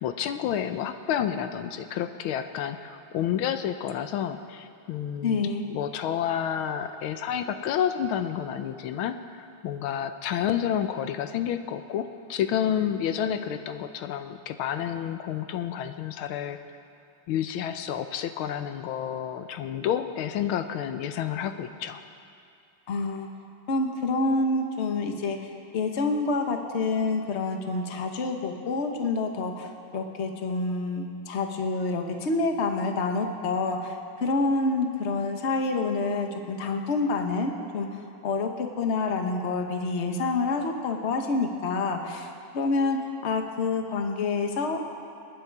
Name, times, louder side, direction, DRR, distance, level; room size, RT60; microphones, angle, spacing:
voice 1, 0.0-16.6 17.3-22.0, left 9 dB, 85° left, 9 dB, 1.5 m, -30 dB
voice 2, 5.2-5.7 22.9-23.3 23.7-44.9, left 3 dB, 40° left, 4 dB, 1.2 m, -28 dB
26.5 x 9.6 x 4.7 m, 2.5 s
omnidirectional pair, 2.3 m